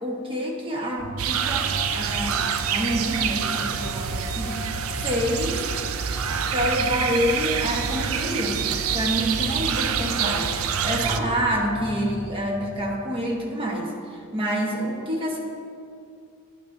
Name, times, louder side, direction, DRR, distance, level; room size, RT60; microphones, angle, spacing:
voice 1, 0.0-4.6 4.9-5.7 6.4-15.4, equal, 25° right, 0 dB, 1.1 m, -27 dB
sound 1, 1.0-12.9, equal, 40° left, 1.0 m, -37 dB
sound 2, 1.2-11.2, right 8 dB, 85° right, 0.4 m, -27 dB
10.5 x 8.7 x 2.7 m, 2.4 s
head